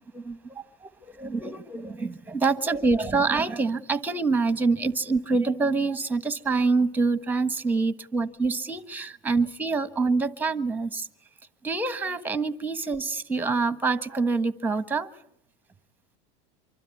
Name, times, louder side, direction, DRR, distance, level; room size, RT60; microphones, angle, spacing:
voice 1, 0.1-0.6 1.0-11.1 11.6-15.1, right 4 dB, 5° right, 1.3 m, -26 dB
25.0 x 25.0 x 8.5 m
supercardioid pair, 140°, 30 cm